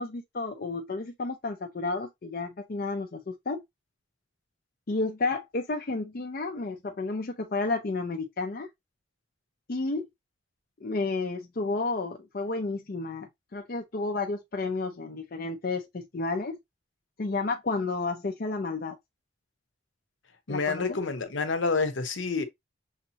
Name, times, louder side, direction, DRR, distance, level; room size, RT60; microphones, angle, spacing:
voice 1, 0.0-3.6 4.9-8.7 9.7-10.1 10.8-16.6 17.2-19.0 20.5-21.0, left 3 dB, 50° left, 0.5 m, -31 dB
voice 2, 20.5-22.4, left 4 dB, 80° left, 0.9 m, -28 dB
6.4 x 2.7 x 2.8 m
head